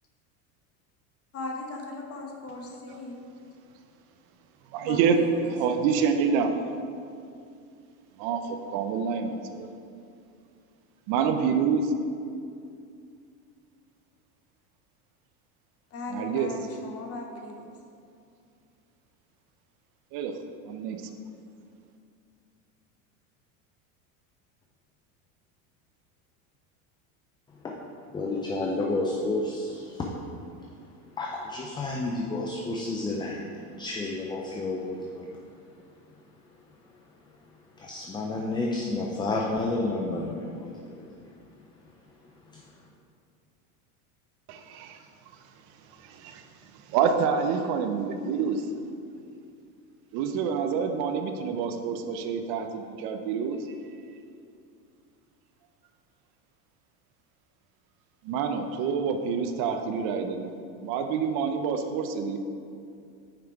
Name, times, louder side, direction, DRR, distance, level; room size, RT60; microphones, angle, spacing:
voice 1, 1.3-3.2 4.9-5.5 15.9-17.7, left 2 dB, 35° left, 1 dB, 1.1 m, -38 dB
voice 2, 4.7-5.2 5.4-6.6 8.2-9.7 11.1-11.9 16.1-16.5 20.1-20.3 20.7-21.1 44.5-45.0 46.0-48.7 50.1-53.6 58.2-60.5 60.8-62.4, right 6 dB, 55° right, 6 dB, 0.7 m, -27 dB
voice 3, 28.1-30.1 31.2-35.4 37.8-41.1 42.5-42.7, left 2 dB, 10° left, -1 dB, 0.3 m, -31 dB
5.9 x 5.0 x 4.6 m, 2.4 s
supercardioid pair, 115°, 43 cm